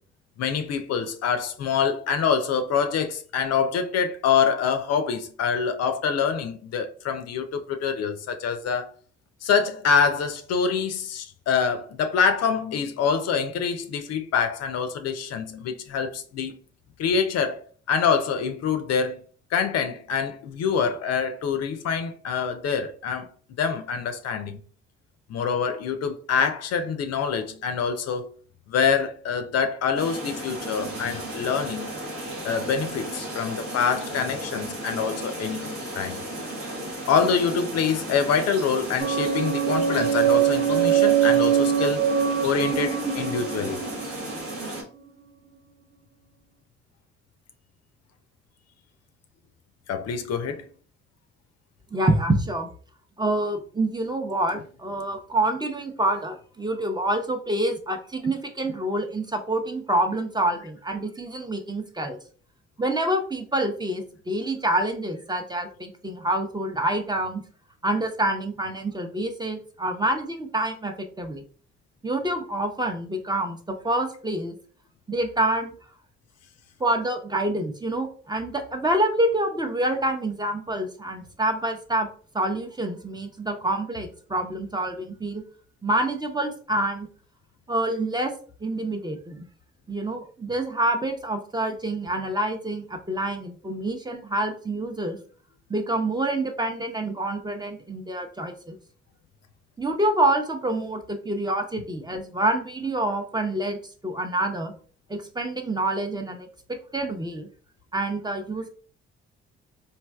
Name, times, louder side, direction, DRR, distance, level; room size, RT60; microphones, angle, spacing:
voice 1, 0.4-8.9 9.4-16.6 17.0-19.2 19.5-23.3 23.6-24.6 25.3-28.3 28.7-32.0 32.4-36.2 37.1-42.1 42.4-43.8 49.9-50.6, left 6 dB, 60° left, 0.5 m, -25 dB
sound 1, 30.0-44.8, right 1 dB, 85° right, 1.1 m, -35 dB
sound 2, 39.0-44.8, right 9 dB, 50° right, 0.7 m, -23 dB
voice 2, 51.9-52.7 53.2-62.2 62.8-67.4 67.8-71.4 72.0-74.6 75.1-75.7 76.8-82.1 82.3-85.4 85.8-87.1 87.7-88.3 88.6-89.5 89.9-95.2 95.7-98.8 99.8-104.7 105.1-107.5 107.9-108.7, right 1 dB, 15° right, 0.6 m, -27 dB
3.2 x 2.6 x 2.2 m
hypercardioid pair, 45°, 29 cm